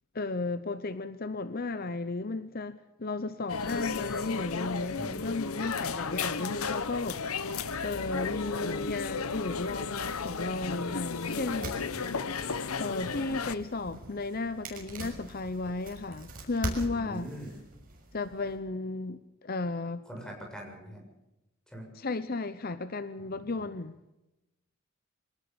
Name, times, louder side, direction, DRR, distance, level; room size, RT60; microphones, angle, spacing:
voice 1, 0.1-7.5 7.8-11.8 12.8-17.3 18.1-20.0 21.9-24.0, left 3 dB, 45° left, 0.8 m, -34 dB
sound 1, 3.5-13.5, left 5 dB, 90° left, 1.1 m, -34 dB
voice 2, 5.0-5.4 16.8-17.5 20.1-21.0 21.7-21.9 23.2-23.6, equal, 5° left, 6.9 m, -43 dB
sound 2, 11.0-18.6, right 1 dB, 40° right, 6.5 m, -43 dB
23.5 x 19.0 x 7.1 m
head